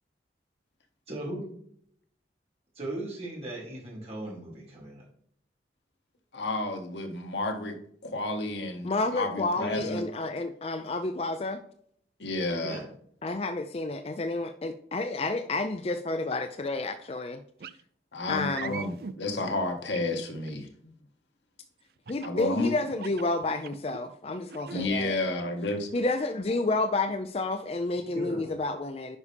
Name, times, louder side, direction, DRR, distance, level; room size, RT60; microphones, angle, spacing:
voice 1, 1.1-1.5 2.8-5.0 9.6-9.8 12.6-12.8 28.1-28.5, right 1 dB, 35° right, -4 dB, 3.5 m, -37 dB
voice 2, 6.3-10.0 12.2-12.8 18.1-20.7 22.2-22.7 24.7-25.9, left 2 dB, 85° left, 4 dB, 1.5 m, -31 dB
voice 3, 8.8-11.6 13.2-17.4 18.3-18.7 22.1-25.2 25.9-29.2, left 2 dB, 35° left, 9 dB, 0.4 m, -30 dB
sound 1, 17.6-17.8 18.5-19.2 19.9-20.6 22.1-22.4 22.9-24.0 24.5-24.9, right 6 dB, 60° right, 0.4 m, -40 dB
9.6 x 5.5 x 3.4 m, 0.64 s
head